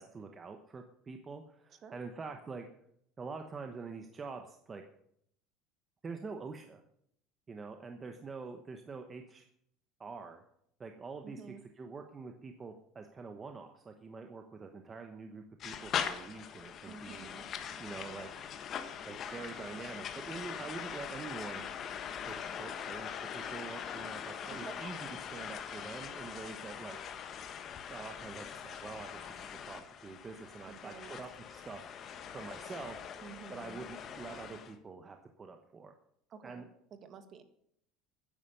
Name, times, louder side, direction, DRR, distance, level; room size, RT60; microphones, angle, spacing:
voice 1, 0.0-2.7 3.2-4.8 6.0-6.8 7.5-9.5 10.0-10.4 10.8-17.3 17.8-18.3 19.0-21.7 22.2-27.0 27.9-33.1 33.5-35.9 36.4-36.7, right 4 dB, 20° right, 5 dB, 1.0 m, -46 dB
voice 2, 11.2-11.6 16.9-17.5 24.5-24.8 30.7-31.1 33.2-33.8 36.3-37.4, right 6 dB, 35° right, 9 dB, 1.7 m, -50 dB
sound 1, 15.6-34.7, left 8 dB, 35° left, 1.3 m, -42 dB
13.0 x 10.0 x 6.8 m, 0.72 s
cardioid pair, 150°, 0 cm